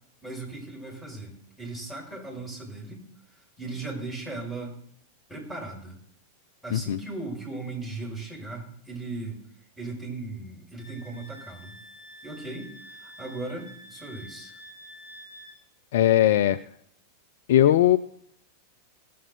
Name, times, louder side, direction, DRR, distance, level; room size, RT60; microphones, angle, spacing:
voice 1, 0.2-3.0 3.6-4.8 5.3-6.0 6.6-9.4 9.8-11.7 12.2-12.7 13.0-14.6, right 2 dB, 5° left, -3 dB, 6.5 m, -37 dB
Wind instrument woodwind instrument, 10.8-15.6, equal, 20° left, 4.5 m, -48 dB
voice 2, 15.9-16.6 17.5-18.0, left 12 dB, 55° left, 13 dB, 0.4 m, -19 dB
18.5 x 8.6 x 4.0 m, 0.65 s
figure-of-eight pair, 90°, 0 cm